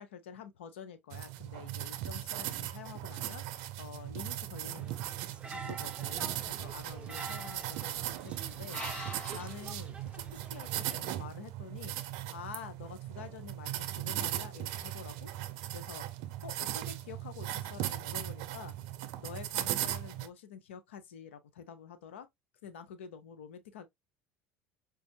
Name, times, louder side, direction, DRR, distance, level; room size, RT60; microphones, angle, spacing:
voice 1, 0.0-5.0 5.5-10.2 10.5-12.0 12.3-15.3 15.7-16.1 16.4-18.7 19.2-22.3 22.6-23.9, left 7 dB, 90° left, 0.5 m, -48 dB
sound 1, 1.1-20.3, right 13 dB, 70° right, 0.5 m, -38 dB
sound 2, 4.6-11.0, right 3 dB, 20° right, 0.6 m, -48 dB
sound 3, 6.1-10.5, left 1 dB, 20° left, 1.6 m, -49 dB
5.1 x 2.3 x 2.6 m
hypercardioid pair, 85°, 6 cm